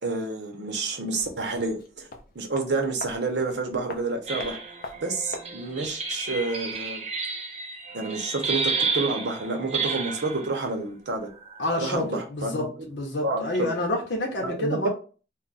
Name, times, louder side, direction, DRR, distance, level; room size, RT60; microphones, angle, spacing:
voice 1, 0.0-2.1 2.3-4.6 5.0-7.0 7.9-11.3 11.8-12.7 13.2-13.7 14.4-14.9, right 3 dB, 80° right, 4 dB, 0.7 m, -29 dB
sound 1, 1.1-6.1 6.3-6.4, left 3 dB, 50° left, 0.5 m, -43 dB
sound 2, 4.3-10.5 11.4-12.0, right 4 dB, 35° right, 0.5 m, -31 dB
voice 2, 11.6-14.9, left 1 dB, 85° left, 0 dB, 0.7 m, -28 dB
2.3 x 2.1 x 3.9 m, 0.37 s
head